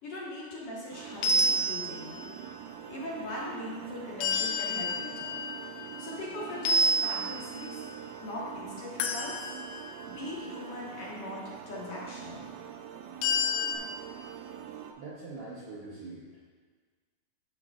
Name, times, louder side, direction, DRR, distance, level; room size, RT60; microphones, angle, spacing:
voice 1, 0.0-2.3 2.9-5.4 6.0-7.9 8.2-9.5 10.1-12.4, left 1 dB, 55° left, -6 dB, 2.2 m, -40 dB
sound 1, 0.9-14.9, right 9 dB, 85° right, 2.0 m, -44 dB
sound 2, 1.2-2.4 4.2-6.2 6.7-7.9 9.0-10.0 13.2-13.8, left 1 dB, 85° left, 2.0 m, -29 dB
voice 2, 15.0-16.3, right 3 dB, 65° right, -5 dB, 1.5 m, -43 dB
12.5 x 5.3 x 2.4 m, 1.5 s
omnidirectional pair, 3.4 m